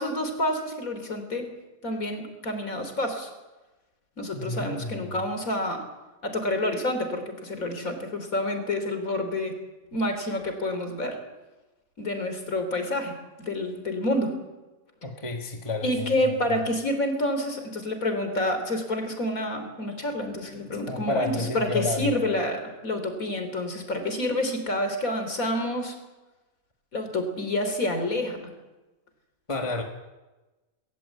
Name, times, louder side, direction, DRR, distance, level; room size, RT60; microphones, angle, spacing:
voice 1, 0.0-1.5 1.8-3.3 4.2-5.8 6.2-9.6 9.9-11.2 12.0-14.4 15.8-26.0 26.9-28.4, left 1 dB, 75° left, 6 dB, 3.8 m, -28 dB
voice 2, 4.3-5.1 15.0-16.1 16.5-16.6 20.7-22.2 29.5-29.8, left 2 dB, 20° left, 2 dB, 1.8 m, -31 dB
19.0 x 18.5 x 8.3 m, 1.1 s
omnidirectional pair, 1.5 m